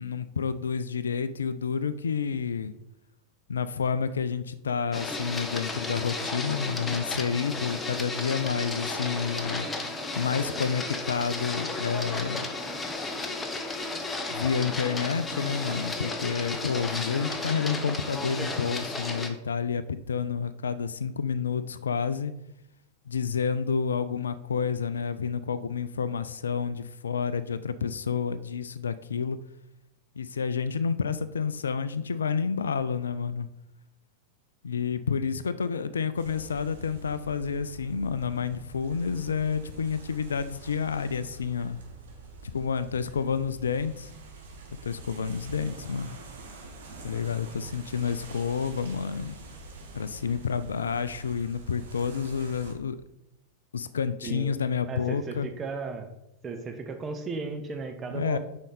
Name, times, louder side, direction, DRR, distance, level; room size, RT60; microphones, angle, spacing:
voice 1, 0.0-2.7 3.5-9.7 10.1-12.5 14.3-22.3 23.1-29.4 30.2-33.5 34.6-41.8 42.4-44.1 44.8-46.2 47.0-49.3 49.9-53.0 53.7-55.5 58.1-58.4, left 6 dB, 70° left, 14 dB, 0.4 m, -29 dB
Printer, 4.9-19.3, left 2 dB, 15° left, 0.8 m, -33 dB
sound 1, 36.2-52.7, right 3 dB, 65° right, 1.5 m, -46 dB
voice 2, 54.9-56.1 56.4-58.4, right 4 dB, 25° right, 5 dB, 1.0 m, -35 dB
7.2 x 5.1 x 4.1 m, 0.85 s
figure-of-eight pair, 90°, 0 cm